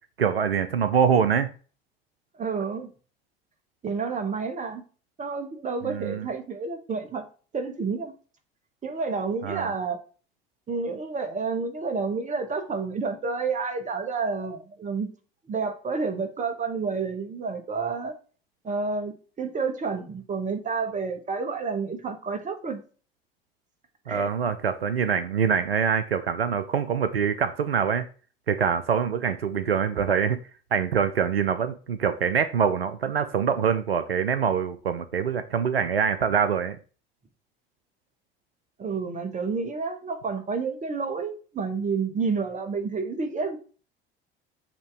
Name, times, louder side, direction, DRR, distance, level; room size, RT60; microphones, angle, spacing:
voice 1, 0.2-1.5 5.8-6.3 9.4-9.7 24.1-28.1 28.5-30.4 30.7-36.8, right 7 dB, 85° right, 0.5 m, -24 dB
voice 2, 2.3-2.9 3.8-4.8 5.2-7.2 7.5-8.1 8.8-10.0 10.7-15.1 15.5-18.1 18.6-22.8 24.1-24.3 38.8-43.6, right 4 dB, 25° right, 1.2 m, -30 dB
7.2 x 2.9 x 4.8 m
figure-of-eight pair, 60°, 29 cm